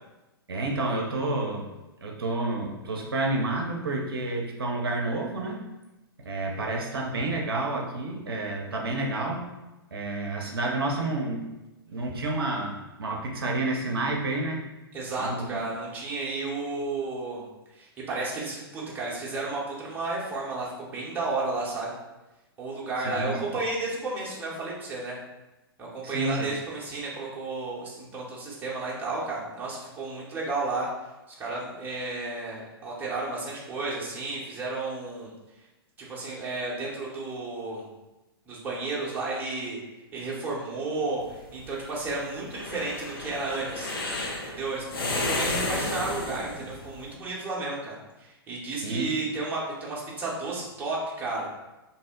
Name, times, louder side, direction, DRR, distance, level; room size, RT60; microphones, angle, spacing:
voice 1, 0.5-1.7 2.0-5.6 6.2-9.5 9.9-11.4 11.9-14.6 15.2-15.6 23.0-23.4 26.0-26.5 48.7-49.1, right 2 dB, 65° right, -1 dB, 0.5 m, -29 dB
voice 2, 14.9-17.5 17.7-21.9 22.6-25.2 25.8-30.9 31.4-35.3 36.0-37.9 38.5-39.8 40.1-43.9 44.5-51.5, right 3 dB, 15° right, -5 dB, 0.7 m, -32 dB
sound 1, 41.2-47.0, left 2 dB, 60° left, 0.6 m, -32 dB
2.6 x 2.0 x 3.6 m, 1.0 s
figure-of-eight pair, 110°, 13 cm